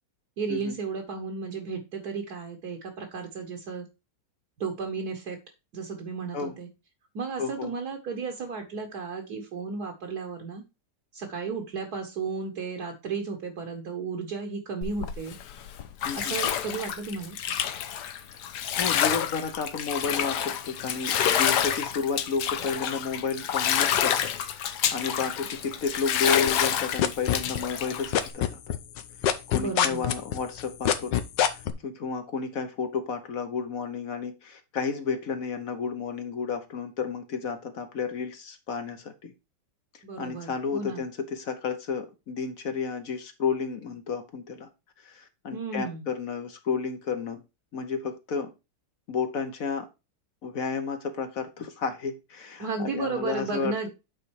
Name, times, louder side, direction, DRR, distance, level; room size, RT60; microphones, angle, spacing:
voice 1, 0.4-3.9 4.6-5.4 5.7-6.7 7.2-10.6 11.1-15.4 16.1-17.4 29.5-30.1 40.0-41.0 45.5-46.1 52.6-53.9, right 4 dB, 65° right, 3 dB, 1.7 m, -34 dB
voice 2, 7.4-7.7 16.0-16.4 18.8-28.7 29.2-31.2 31.5-39.3 39.9-44.7 45.0-47.4 47.7-48.5 49.1-49.9 50.4-53.9, left 5 dB, 55° left, 7 dB, 1.3 m, -32 dB
Bathtub (filling or washing), 14.8-28.3, left 9 dB, 70° left, 1.3 m, -28 dB
sound 1, 26.5-27.9 28.1-31.7, left 9 dB, 90° left, 1.5 m, -24 dB
8.7 x 4.1 x 4.7 m, 0.26 s
omnidirectional pair, 1.9 m